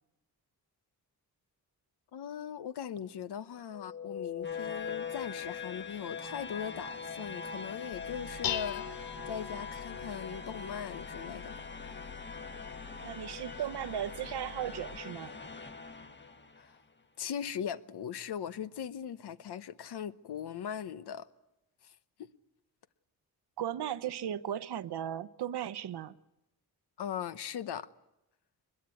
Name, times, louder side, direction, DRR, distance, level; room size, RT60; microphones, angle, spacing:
voice 1, 2.1-11.9 16.6-16.7 17.2-21.3 21.8-22.3 27.0-27.9, left 8 dB, 85° left, 1.1 m, -40 dB
sound 1, 3.7-16.7, left 5 dB, 30° left, 1.3 m, -42 dB
Dishes pots and pans, 7.9-15.0, left 9 dB, 60° left, 1.0 m, -43 dB
voice 2, 13.0-15.3 23.6-26.1, right 10 dB, 85° right, 0.9 m, -36 dB
24.5 x 21.5 x 8.4 m
cardioid pair, 85°, 39 cm